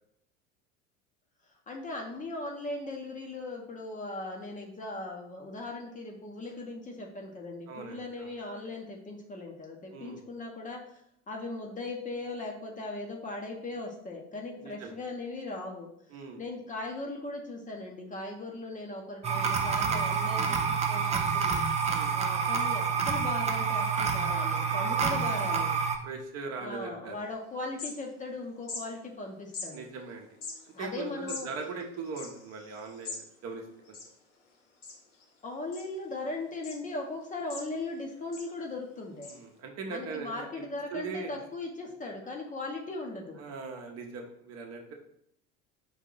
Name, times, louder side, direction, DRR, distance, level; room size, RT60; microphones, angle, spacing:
voice 1, 1.7-11.0 11.3-15.9 16.1-21.6 22.1-25.7 26.6-29.9 30.7-31.5 35.4-39.3 39.9-43.5, left 2 dB, 20° left, 0 dB, 0.8 m, -38 dB
voice 2, 7.7-8.3 9.9-10.2 14.6-15.0 16.1-16.4 21.9-22.1 25.1-25.3 26.0-27.2 29.7-30.3 30.8-34.0 39.3-40.7 40.9-41.3 43.4-44.9, right 4 dB, 40° right, 2 dB, 0.9 m, -40 dB
sound 1, 19.2-26.0, right 5 dB, 20° right, 0.4 m, -28 dB
sound 2, 27.2-27.3 27.6-28.3 28.6-28.8 29.5-29.7 30.3-33.2 33.5-33.6 33.8-34.5 34.8-35.2 35.7-36.2 36.6-36.8 37.2-38.0 38.3-38.5 39.2-39.3, left 4 dB, 60° left, 1.3 m, -42 dB
4.8 x 2.7 x 3.9 m, 0.72 s
figure-of-eight pair, 70°, 40 cm